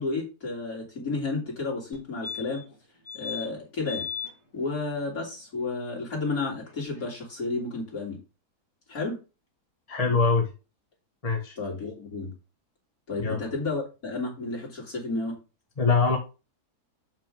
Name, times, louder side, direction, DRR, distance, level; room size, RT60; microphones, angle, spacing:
voice 1, 0.0-2.6 3.1-4.1 4.5-8.2 8.9-9.2 11.6-12.3 13.1-15.3, left 3 dB, 60° left, -3 dB, 3.4 m, -32 dB
sound 1, 1.9-2.0 2.2-2.7 3.1-3.5 3.9-4.3 6.7-6.8 7.0-7.1, left 7 dB, 45° left, 2.5 m, -36 dB
voice 2, 9.9-10.5 11.2-11.6 13.2-13.4 15.8-16.2, left 4 dB, 25° left, 0 dB, 1.8 m, -23 dB
6.9 x 6.1 x 3.6 m, 0.30 s
omnidirectional pair, 1.7 m